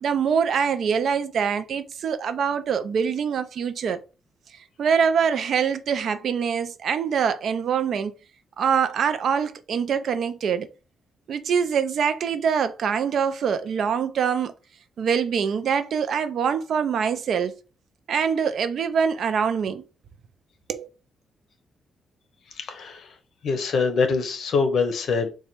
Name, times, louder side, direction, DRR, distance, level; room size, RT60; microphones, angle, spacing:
voice 1, 0.0-4.0 4.8-8.1 8.6-10.7 11.3-14.5 15.0-17.6 18.1-19.8 20.7-20.9, right 7 dB, 60° right, 0.5 m, -24 dB
voice 2, 22.5-23.2 23.4-25.3, left 4 dB, 60° left, 0.8 m, -24 dB
4.0 x 2.3 x 4.4 m
cardioid pair, 135°, 0 cm